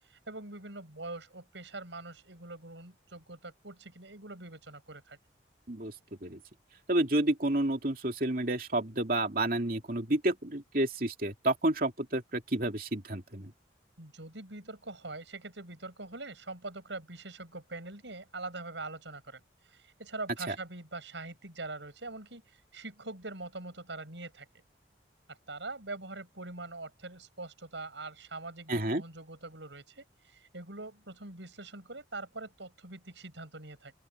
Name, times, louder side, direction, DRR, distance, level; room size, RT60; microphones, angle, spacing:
voice 1, 0.1-5.2 14.0-19.4 19.7-22.4 22.7-24.5 25.3-33.9, right 2 dB, 80° right, 5.9 m, -43 dB
voice 2, 6.9-13.5 20.5-20.6 28.7-29.0, right 1 dB, 50° right, 2.8 m, -30 dB
open air
head